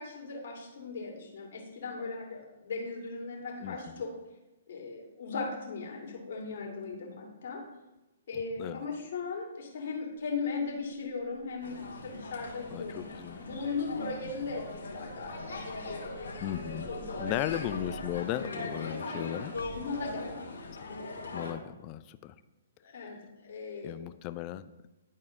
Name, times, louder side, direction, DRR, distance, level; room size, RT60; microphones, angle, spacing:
voice 1, 0.0-4.1 4.7-7.6 8.3-13.1 13.4-16.0 16.6-17.4 19.7-20.5 22.8-24.0, left 4 dB, 60° left, -1 dB, 2.1 m, -38 dB
voice 2, 3.6-4.0 8.6-8.9 12.7-13.4 16.4-16.9 17.2-19.7 21.3-22.3 23.8-24.7, left 13 dB, 35° left, 13 dB, 0.4 m, -36 dB
sound 1, 10.2-18.2, right 6 dB, 50° right, 1.9 m, -52 dB
sound 2, 11.6-21.5, left 2 dB, 75° left, 1.8 m, -40 dB
11.0 x 4.2 x 3.7 m, 1.0 s
figure-of-eight pair, 125°, 0 cm